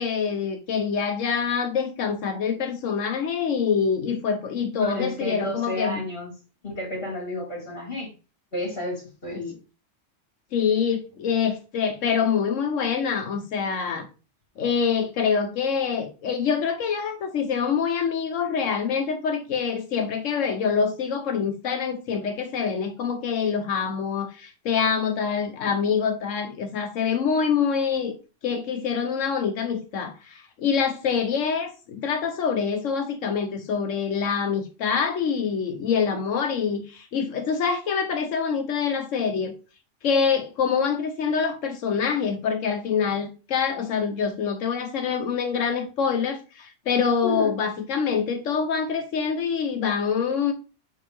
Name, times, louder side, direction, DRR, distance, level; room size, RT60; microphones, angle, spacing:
voice 1, 0.0-6.0 9.3-9.5 10.5-14.1 14.6-28.2 28.4-39.5 40.0-50.5, left 6 dB, 85° left, 1.2 m, -25 dB
voice 2, 4.7-6.3 6.6-8.1 8.5-9.4 47.2-47.5, left 1 dB, 50° left, 2.6 m, -31 dB
7.0 x 4.5 x 3.3 m
omnidirectional pair, 1.3 m